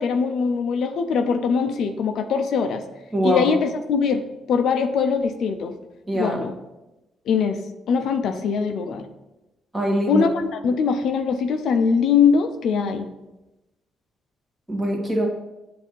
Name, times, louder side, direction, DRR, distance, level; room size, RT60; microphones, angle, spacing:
voice 1, 0.0-2.8 3.2-4.2 4.5-5.7 6.1-6.5 7.3-7.6 7.9-9.1 10.1-13.1, left 6 dB, 70° left, 7 dB, 0.5 m, -22 dB
voice 2, 3.1-3.5 6.1-6.4 9.7-10.3 14.7-15.3, right 1 dB, 10° right, -2 dB, 1.6 m, -22 dB
7.3 x 2.7 x 5.4 m, 1.0 s
cardioid pair, 90°, 0 cm